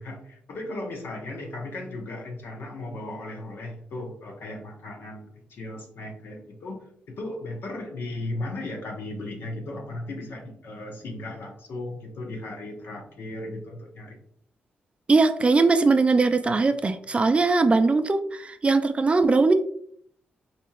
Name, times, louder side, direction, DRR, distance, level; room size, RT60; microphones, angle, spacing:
voice 1, 0.0-14.2, left 2 dB, 70° left, 2 dB, 0.9 m, -36 dB
voice 2, 15.1-19.5, right 3 dB, 30° right, 9 dB, 0.4 m, -20 dB
4.2 x 2.8 x 2.4 m, 0.63 s
cardioid pair, 65°, 4 cm